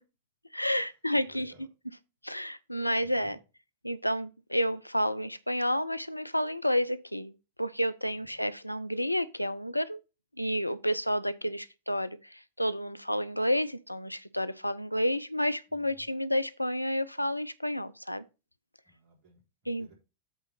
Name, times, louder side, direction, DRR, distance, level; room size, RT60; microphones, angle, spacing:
voice 1, 0.5-1.5 2.2-3.4 3.8-10.0 10.4-18.2 19.7-19.9, equal, 90° left, 0.4 m, -30 dB
voice 2, 1.2-1.7 3.0-3.4 8.1-8.5 15.7-16.1 18.9-19.9, right 2 dB, 45° right, 4.0 m, -59 dB
8.0 x 3.7 x 5.6 m
figure-of-eight pair, 90°, 0 cm